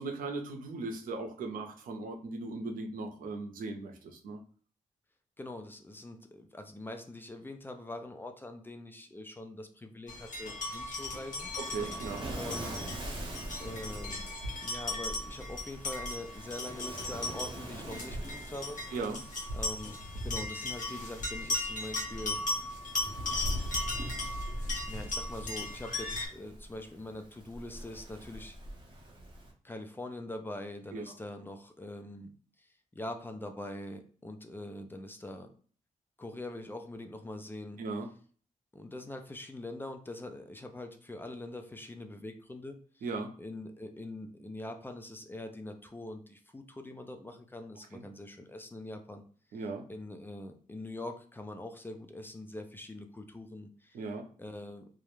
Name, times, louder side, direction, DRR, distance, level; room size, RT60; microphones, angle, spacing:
voice 1, 0.0-4.4 11.6-12.3 18.9-19.2 30.9-31.0 37.8-38.1 43.0-43.3 47.9-48.0 49.5-49.9 53.9-54.3, right 3 dB, 85° right, 3 dB, 0.5 m, -38 dB
voice 2, 5.4-11.5 12.3-12.8 13.6-14.2 14.6-18.8 19.5-22.7 24.9-28.6 29.6-32.3 32.6-35.5 36.2-37.8 38.7-43.1 43.4-49.2 49.5-49.6 49.9-54.0 54.4-54.9, left 1 dB, 15° left, 6 dB, 0.3 m, -43 dB
sound 1, 10.1-26.3, left 2 dB, 65° left, 0.8 m, -37 dB
Waves surf, 11.3-29.5, right 1 dB, 35° right, 0.7 m, -46 dB
2.3 x 2.0 x 3.0 m, 0.43 s
wide cardioid pair, 120°, 14 cm